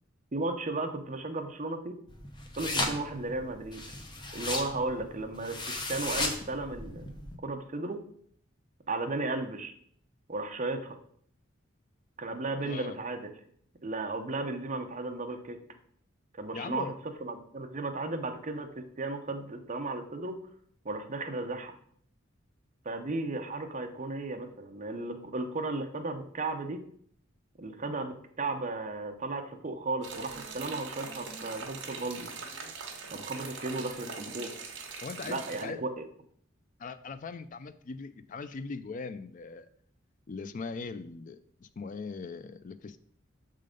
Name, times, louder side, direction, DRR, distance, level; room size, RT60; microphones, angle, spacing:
voice 1, 0.3-1.9 2.6-3.8 4.3-5.6 5.9-8.0 8.9-9.7 10.3-11.0 12.2-13.3 13.8-15.6 16.4-16.9 17.2-20.4 20.8-21.8 22.8-26.8 27.6-32.3 33.1-34.5 35.2-35.9, right 2 dB, 35° right, 4 dB, 0.7 m, -35 dB
sound 1, 2.1-7.4, left 2 dB, 20° left, 0.8 m, -36 dB
voice 2, 12.6-13.0 16.5-16.9 35.0-35.8 36.8-39.7 40.3-43.0, left 4 dB, 40° left, 12 dB, 0.4 m, -40 dB
sound 2, 30.0-35.6, right 5 dB, 60° right, 1.2 m, -42 dB
6.5 x 3.8 x 5.0 m, 0.63 s
head